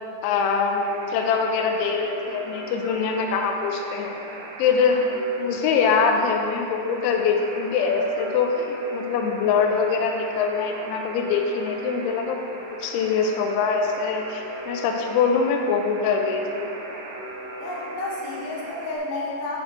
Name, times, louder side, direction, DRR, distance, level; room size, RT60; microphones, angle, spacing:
voice 1, 0.2-4.2 4.6-5.0 5.4-8.7 8.9-16.7, left 5 dB, 90° left, 3 dB, 2.7 m, -23 dB
Alarm, 0.8-19.0, right 1 dB, 75° right, 3.4 m, -38 dB
voice 2, 17.6-19.6, left 2 dB, 70° left, -4 dB, 3.6 m, -31 dB
7.7 x 7.4 x 4.4 m, 2.8 s
omnidirectional pair, 6.0 m